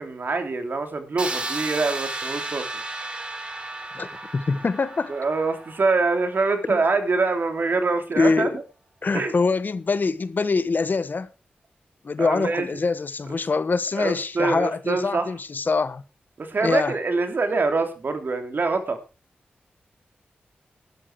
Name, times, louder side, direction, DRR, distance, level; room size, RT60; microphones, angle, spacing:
voice 1, 0.0-2.7 5.1-8.6 9.1-9.3 12.2-12.7 13.9-15.3 16.4-19.0, right 3 dB, 60° right, 3.2 m, -24 dB
sound 1, 1.2-7.0, right 2 dB, 25° right, 4.4 m, -34 dB
voice 2, 4.3-5.1 6.7-6.8 8.2-8.6 9.0-11.3 12.0-16.0 16.6-16.9, left 4 dB, 55° left, 1.3 m, -24 dB
12.5 x 11.5 x 4.7 m
cardioid pair, 45°, 4 cm